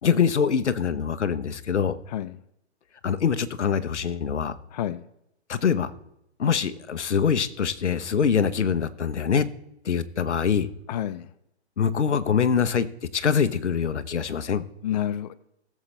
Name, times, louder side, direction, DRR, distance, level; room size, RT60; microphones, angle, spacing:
voice 1, 0.0-2.0 3.0-4.6 5.5-5.9 6.4-9.4 9.8-10.7 11.8-12.9 13.1-14.6, left 7 dB, 85° left, 12 dB, 1.1 m, -24 dB
voice 2, 2.1-2.4 4.7-5.0 10.9-11.3 14.8-15.3, left 11 dB, 40° left, 14 dB, 0.5 m, -29 dB
19.0 x 7.4 x 3.3 m, 0.80 s
hypercardioid pair, 135°, 34 cm